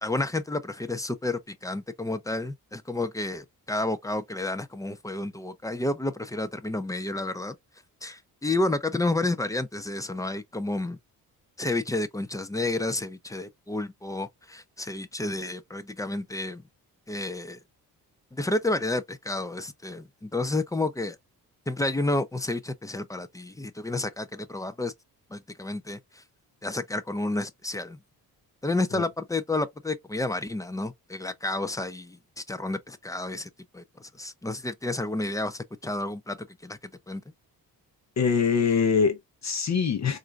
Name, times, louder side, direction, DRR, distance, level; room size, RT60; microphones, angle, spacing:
voice 1, 0.0-7.6 8.0-11.0 11.6-16.6 17.1-17.6 18.3-21.2 21.7-24.9 25.3-26.2 26.6-28.0 28.6-36.8 37.1-37.2, left 2 dB, 10° left, 0.4 m, -30 dB
voice 2, 38.2-40.2, left 6 dB, 45° left, 0.7 m, -24 dB
4.1 x 2.6 x 2.3 m
cardioid pair, 125°, 37 cm